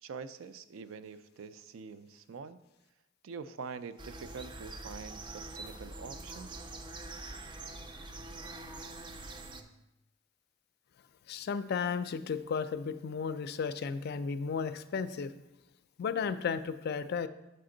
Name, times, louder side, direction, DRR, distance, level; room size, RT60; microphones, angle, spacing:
voice 1, 0.0-2.6 3.2-6.6, right 5 dB, 90° right, 12 dB, 0.4 m, -45 dB
sound 1, 4.0-9.6, right 2 dB, 25° right, 0.4 m, -44 dB
voice 2, 11.3-15.3 16.0-17.3, left 6 dB, 55° left, 12 dB, 0.3 m, -34 dB
6.6 x 5.1 x 3.8 m, 0.96 s
head